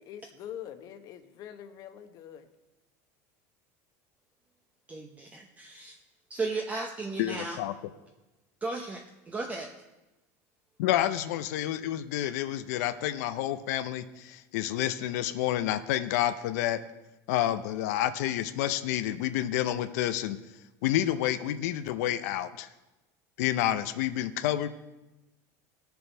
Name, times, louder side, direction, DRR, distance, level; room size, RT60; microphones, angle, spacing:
voice 1, 0.0-2.5, left 10 dB, 45° left, 8 dB, 1.0 m, -44 dB
voice 2, 4.9-5.9 6.3-7.6 8.6-9.7, right 3 dB, 15° right, 2 dB, 0.7 m, -35 dB
voice 3, 7.2-7.7 10.8-16.8 17.3-20.4 20.8-22.7 23.4-24.7, left 12 dB, 80° left, 11 dB, 0.6 m, -29 dB
17.0 x 6.9 x 4.5 m, 1.0 s
supercardioid pair, 135°, 9 cm